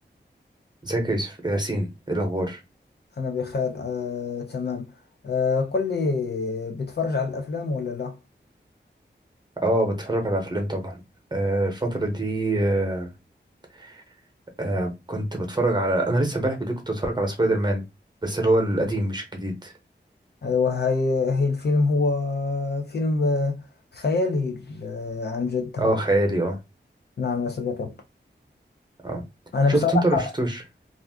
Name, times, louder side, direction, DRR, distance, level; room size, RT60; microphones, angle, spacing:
voice 1, 0.8-2.6 9.6-11.0 11.3-13.1 13.8-14.0 14.6-17.8 18.2-19.7 25.8-26.6 29.0-29.2 29.7-30.6, right 1 dB, 25° right, 0.9 m, -24 dB
voice 2, 3.2-4.9 5.2-8.2 20.4-23.6 23.9-26.0 27.2-27.9 29.5-30.3, left 4 dB, 60° left, 0.5 m, -25 dB
2.4 x 2.3 x 3.4 m
wide cardioid pair, 85°, 19 cm